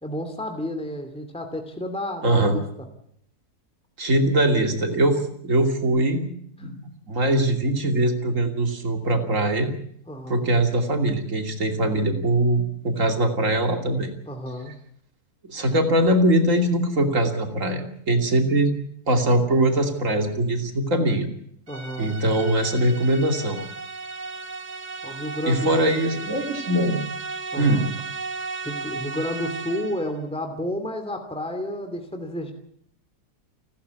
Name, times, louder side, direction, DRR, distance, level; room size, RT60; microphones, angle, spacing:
voice 1, 0.0-2.6 10.1-10.5 14.3-14.7 21.7-22.2 25.0-25.7 27.5-27.8 28.6-32.5, left 1 dB, 5° left, 6 dB, 2.7 m, -31 dB
voice 2, 2.2-2.6 4.0-6.3 6.6-9.7 10.3-14.1 15.5-18.7 19.1-21.3 22.0-23.6 25.5-27.1 27.5-27.8, right 1 dB, 50° right, 5 dB, 3.1 m, -22 dB
sound 1, 21.7-30.1, right 4 dB, 80° right, 2.3 m, -35 dB
29.0 x 13.5 x 8.4 m, 0.70 s
omnidirectional pair, 1.7 m